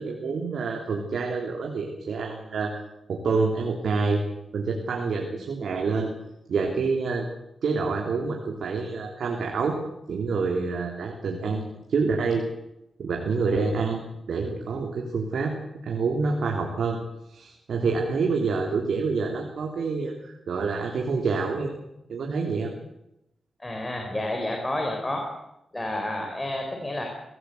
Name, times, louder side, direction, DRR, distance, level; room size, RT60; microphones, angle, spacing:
voice 1, 0.0-2.8 3.1-4.2 4.5-6.1 6.5-7.3 7.6-9.8 10.1-12.4 13.0-14.0 14.3-15.5 15.8-17.0 17.3-21.7 22.1-22.7, right 4 dB, 75° right, 1 dB, 3.5 m, -27 dB
voice 2, 23.6-25.2 25.7-27.0, left 1 dB, 15° left, 2 dB, 4.6 m, -30 dB
24.0 x 18.0 x 8.0 m, 0.84 s
wide cardioid pair, 115°, 0 cm